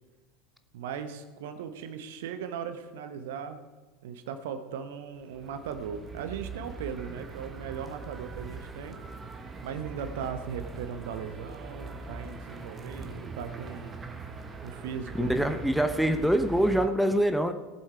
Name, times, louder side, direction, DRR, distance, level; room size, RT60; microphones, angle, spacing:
voice 1, 0.7-3.6 4.0-9.0 9.6-13.9 14.6-15.5, right 7 dB, 60° right, 9 dB, 1.1 m, -38 dB
sound 1, 5.1-16.9, right 3 dB, 20° right, 1.4 m, -41 dB
voice 2, 15.2-17.5, right 1 dB, ahead, 7 dB, 0.9 m, -24 dB
18.5 x 7.5 x 4.7 m, 1.2 s
figure-of-eight pair, 80°, 0 cm